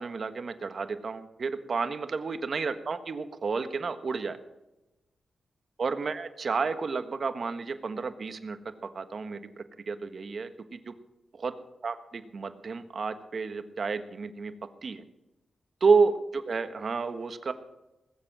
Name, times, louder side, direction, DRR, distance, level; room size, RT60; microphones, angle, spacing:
voice 1, 0.0-4.4 5.8-8.6 8.9-9.4 9.9-10.9 11.3-11.5 11.8-14.5 14.8-15.0 15.8-17.5, right 4 dB, 55° right, 10 dB, 1.4 m, -30 dB
20.0 x 7.9 x 7.4 m, 0.98 s
cardioid pair, 70°, 0 cm